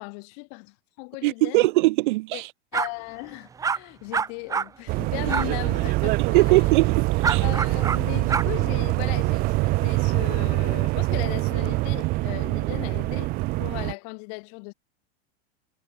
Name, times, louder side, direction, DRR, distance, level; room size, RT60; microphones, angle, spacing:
voice 1, 0.0-1.7 2.3-2.4 2.7-6.7 7.4-13.3 13.6-14.7, left 40 dB or more, 40° left, 3.0 m, -37 dB
voice 2, 1.2-2.5 6.3-7.4, right 20 dB, 50° right, 1.3 m, -21 dB
sound 1, 2.7-2.9 3.6-3.8 4.1-4.7 5.3-5.5 7.2-8.0 8.3-8.5, right 6 dB, 10° right, 1.6 m, -25 dB
sound 2, 4.9-13.9, right 21 dB, 25° right, 1.0 m, -24 dB
supercardioid pair, 175°, 32 cm